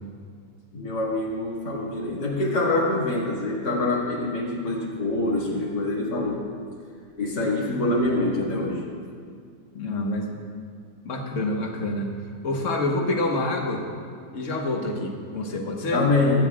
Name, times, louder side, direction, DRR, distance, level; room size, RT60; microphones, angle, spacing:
voice 1, 0.7-6.4 7.2-8.9 15.9-16.4, left 2 dB, 80° left, -4 dB, 2.7 m, -25 dB
voice 2, 9.7-10.4 11.0-12.1 12.4-13.8 14.3-16.0, left 2 dB, 50° left, 1 dB, 1.5 m, -27 dB
22.0 x 9.1 x 2.4 m, 2.2 s
omnidirectional pair, 1.8 m